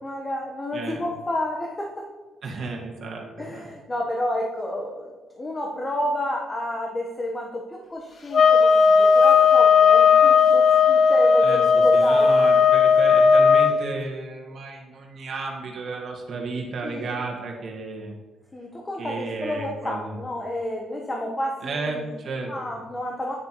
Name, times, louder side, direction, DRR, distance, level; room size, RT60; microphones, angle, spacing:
voice 1, 0.0-2.1 3.4-12.3 16.8-17.2 18.5-22.1 22.5-23.3, left 1 dB, 25° left, 0 dB, 1.0 m, -30 dB
voice 2, 2.4-3.7 11.4-11.6 11.9-18.1 19.0-20.1 21.6-22.5, right 3 dB, 60° right, 0 dB, 1.6 m, -33 dB
sound 1, 8.3-13.8, left 5 dB, 45° left, 0.6 m, -16 dB
9.6 x 7.1 x 3.0 m, 1.3 s
cardioid pair, 85°, 0 cm